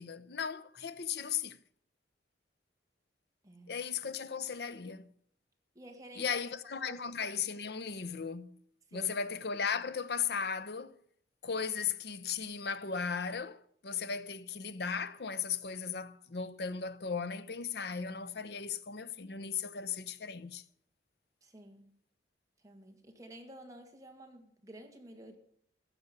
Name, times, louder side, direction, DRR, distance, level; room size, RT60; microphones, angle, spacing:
voice 1, 0.0-1.6 3.7-5.1 6.2-8.5 8.9-11.0 11.4-20.6, left 6 dB, 65° left, 0.7 m, -36 dB
voice 2, 3.4-3.8 5.8-6.5 6.7-7.0 8.9-9.2 21.4-21.9 22.6-25.3, right 1 dB, 20° right, 1.9 m, -51 dB
15.0 x 6.2 x 9.6 m
head